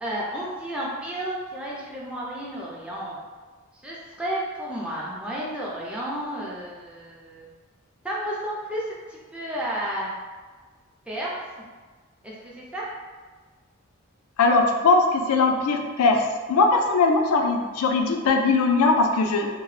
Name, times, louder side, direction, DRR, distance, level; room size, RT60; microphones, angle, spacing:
voice 1, 0.0-3.2 3.8-7.5 8.0-8.8 9.1-10.1 11.1-11.3 12.2-12.8, right 1 dB, 5° right, -6 dB, 0.3 m, -32 dB
voice 2, 14.4-16.2 16.5-19.5, left 3 dB, 85° left, 4 dB, 0.4 m, -20 dB
2.8 x 2.1 x 3.1 m, 1.4 s
head